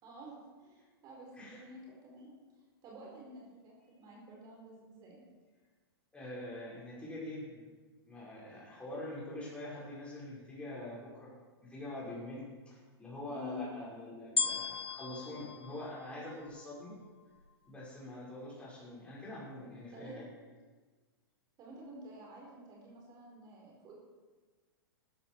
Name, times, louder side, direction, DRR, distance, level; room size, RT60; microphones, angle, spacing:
voice 1, 0.0-2.3 2.8-5.2 13.3-13.7 19.9-20.2 21.6-24.0, left 1 dB, 30° right, -2 dB, 4.5 m, -49 dB
voice 2, 6.1-7.7 8.1-11.3 11.6-16.9 17.7-20.3, left 1 dB, 10° left, -6 dB, 5.1 m, -44 dB
sound 1, 14.4-16.8 17.4-17.5, left 4 dB, 85° left, 0.5 m, -36 dB
15.0 x 13.5 x 4.7 m, 1.4 s
figure-of-eight pair, 105°, 13 cm